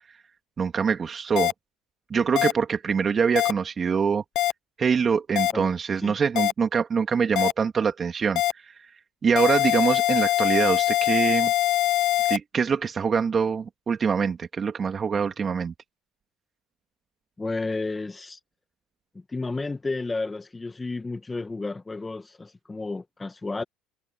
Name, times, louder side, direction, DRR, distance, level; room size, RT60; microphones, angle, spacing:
voice 1, 0.6-1.5 2.1-4.2 4.8-8.7 9.2-11.5 12.3-15.7, right 6 dB, 35° right, 2.7 m, -24 dB
sound 1, 1.4-1.5 2.4-2.5 3.4-3.5 4.4-4.5 5.4-5.5 6.4-6.5 7.4-7.5 8.4-8.5 9.4-12.4, left 14 dB, 60° left, 1.1 m, -22 dB
voice 2, 5.5-6.1 17.4-18.4 19.3-23.6, left 3 dB, 15° left, 1.7 m, -32 dB
supercardioid pair, 90°, 0 cm